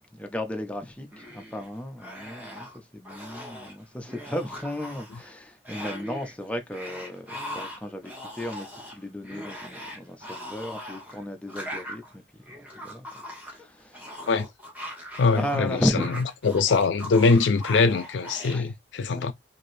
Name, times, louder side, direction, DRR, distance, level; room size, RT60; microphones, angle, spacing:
voice 1, 0.0-13.1 13.4-14.3 15.3-16.1 18.5-18.7 19.1-19.3, left 1 dB, 5° left, 0.4 m, -34 dB
sound 1, 1.1-1.7 2.0-2.8 3.1-3.7 4.1-5.3 5.7-6.3 6.7-15.6 15.8-18.6, equal, 10° right, 1.0 m, -40 dB
voice 2, 15.2-15.8 16.4-19.3, left 4 dB, 90° left, 0.4 m, -22 dB
3.3 x 2.5 x 2.6 m
head